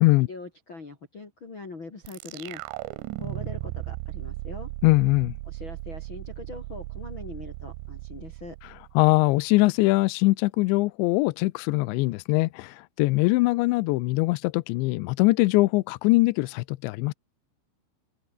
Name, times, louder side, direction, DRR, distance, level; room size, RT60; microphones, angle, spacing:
voice 1, 0.2-2.6 3.2-4.7 5.4-8.6, left 3 dB, 30° left, 3.4 m, -42 dB
sound 1, 2.0-9.3, right 20 dB, 80° right, 2.7 m, -37 dB
voice 2, 4.8-5.3 9.0-17.1, left 22 dB, 80° left, 2.8 m, -22 dB
omnidirectional pair, 5.5 m